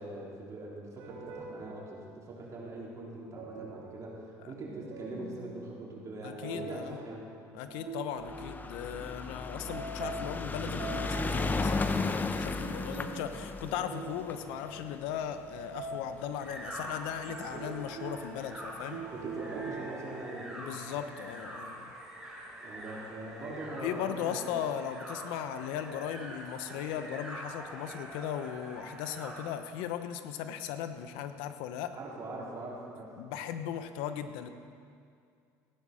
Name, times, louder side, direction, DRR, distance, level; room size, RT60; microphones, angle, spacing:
voice 1, 0.0-7.3 17.5-17.7 19.0-20.7 22.6-24.5 31.9-33.1, right 2 dB, 40° right, -4 dB, 4.1 m, -42 dB
sound 1, 1.0-2.4 3.2-9.0 9.5-16.9 17.3-20.5, right 3 dB, 70° right, 2.9 m, -44 dB
voice 2, 6.2-7.0 7.5-19.0 20.5-21.9 23.8-32.0 33.2-34.5, left 9 dB, 85° left, 9 dB, 0.9 m, -37 dB
sound 2, 8.2-16.7 17.5-17.6 17.8-17.9 18.2-18.3, left 3 dB, 20° left, 0.8 m, -35 dB
sound 3, 16.4-29.5, right 1 dB, 5° right, 4.5 m, -45 dB
15.5 x 10.5 x 6.3 m, 2.3 s
supercardioid pair, 100°, 8 cm